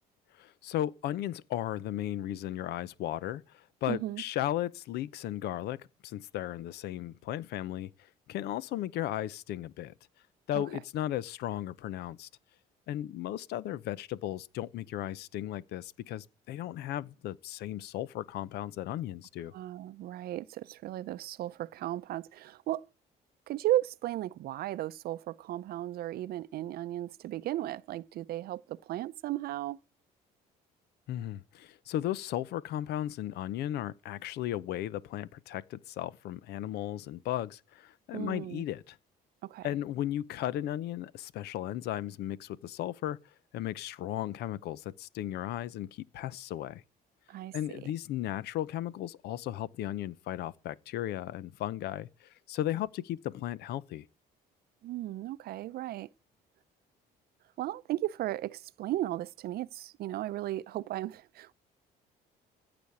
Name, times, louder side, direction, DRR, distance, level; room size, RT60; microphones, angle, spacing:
voice 1, 0.4-7.9 8.3-9.9 10.5-12.3 12.9-19.5 31.1-39.0 39.6-43.2 43.5-46.8 47.5-54.1, left 12 dB, 75° left, 0.7 m, -35 dB
voice 2, 3.9-4.2 10.5-10.6 19.5-22.8 23.5-29.8 38.1-38.6 39.4-39.7 47.3-47.5 54.8-56.1 57.6-61.5, right 14 dB, 65° right, 0.6 m, -35 dB
15.0 x 5.1 x 8.5 m
cardioid pair, 110°, 17 cm